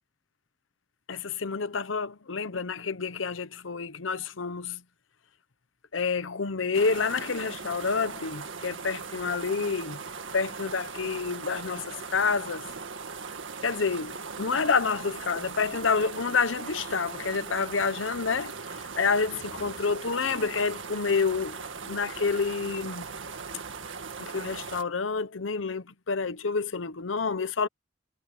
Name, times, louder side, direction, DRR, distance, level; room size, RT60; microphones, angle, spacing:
voice 1, 1.1-4.8 5.9-10.0 10.3-12.7 13.6-18.5 19.0-23.1 24.2-27.7, left 5 dB, 90° left, 0.9 m, -28 dB
sound 1, 6.7-24.8, right 5 dB, 80° right, 1.9 m, -39 dB
head